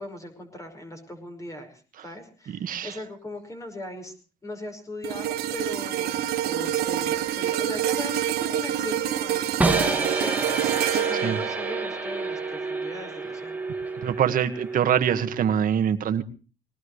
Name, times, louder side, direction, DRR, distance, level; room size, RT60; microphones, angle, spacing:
voice 1, 0.0-4.1 4.4-13.6, left 1 dB, 20° left, 5 dB, 5.4 m, -39 dB
voice 2, 2.6-2.9 11.2-11.4 14.0-16.2, right 9 dB, 60° right, 9 dB, 1.7 m, -24 dB
sound 1, 5.0-13.4 13.8-14.0, right 11 dB, 80° right, 1.6 m, -28 dB
sound 2, 9.6-15.6, right 2 dB, 10° right, 2.1 m, -29 dB
21.5 x 19.0 x 3.2 m, 0.37 s
cardioid pair, 105°, 16 cm